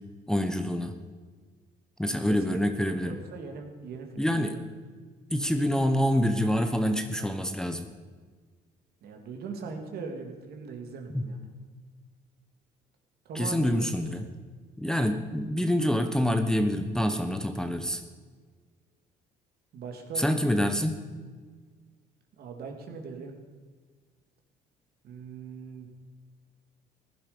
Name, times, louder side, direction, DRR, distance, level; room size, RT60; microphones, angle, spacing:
voice 1, 0.3-0.9 2.0-3.2 4.2-4.6 5.3-7.9 11.1-11.3 13.3-14.2 14.8-18.0 20.2-21.0, equal, 5° left, 6 dB, 1.0 m, -26 dB
voice 2, 2.3-4.6 7.1-7.3 9.0-11.5 13.2-14.3 19.7-20.3 22.4-23.3 25.0-25.9, right 4 dB, 65° right, 4 dB, 2.5 m, -40 dB
16.0 x 11.5 x 5.2 m, 1.5 s
cardioid pair, 110°, 17 cm